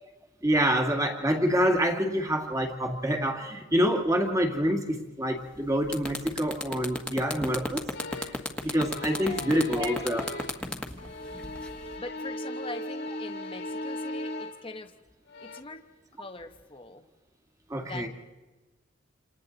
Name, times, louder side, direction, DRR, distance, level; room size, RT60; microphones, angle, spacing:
voice 1, 0.4-7.8 8.2-8.3 8.6-10.3 17.7-18.1, equal, 15° right, 3 dB, 1.9 m, -26 dB
sound 1, 5.4-5.6 5.9-12.0, left 1 dB, 5° left, 1.4 m, -34 dB
sound 2, 7.9-8.5 8.8-10.7 11.0-14.7 15.3-15.6, left 1 dB, 60° left, 2.1 m, -38 dB
voice 2, 9.2-9.8 12.0-14.9 15.4-15.8 16.2-17.0 17.8-18.1, left 3 dB, 25° left, 5 dB, 1.0 m, -42 dB
28.0 x 27.5 x 4.0 m, 1.2 s
head